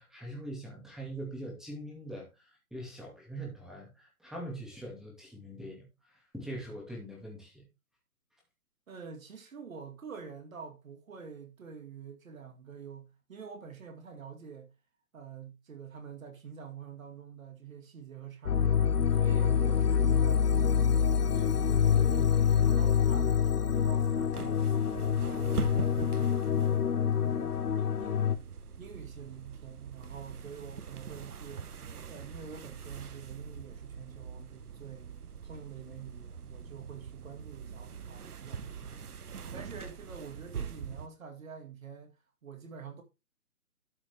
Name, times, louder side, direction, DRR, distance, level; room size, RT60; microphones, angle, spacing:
voice 1, 0.0-5.9 6.3-7.6, right 1 dB, ahead, 2.4 m, -42 dB
voice 2, 8.9-14.7 15.1-18.9 19.1-20.9 21.3-22.3 22.6-24.6 25.0-28.4 28.8-31.7 32.1-35.1 35.4-39.1 39.5-42.2 42.4-43.0, right 6 dB, 60° right, 2.3 m, -47 dB
sound 1, 18.4-28.4, left 7 dB, 85° left, 0.9 m, -26 dB
sound 2, 23.7-41.1, right 6 dB, 80° right, 1.1 m, -43 dB
12.5 x 5.8 x 3.6 m
hypercardioid pair, 150°, 45 cm